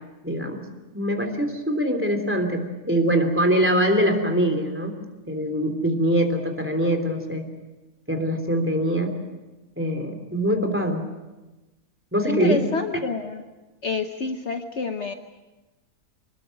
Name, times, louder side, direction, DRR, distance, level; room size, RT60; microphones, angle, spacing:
voice 1, 0.2-0.6 0.9-5.0 5.3-7.4 8.1-9.1 9.8-11.0 12.1-12.6, equal, 10° right, 5 dB, 3.1 m, -23 dB
voice 2, 12.3-13.4 13.8-15.1, left 4 dB, 50° left, 6 dB, 1.3 m, -28 dB
25.5 x 20.5 x 7.7 m, 1.1 s
omnidirectional pair, 1.6 m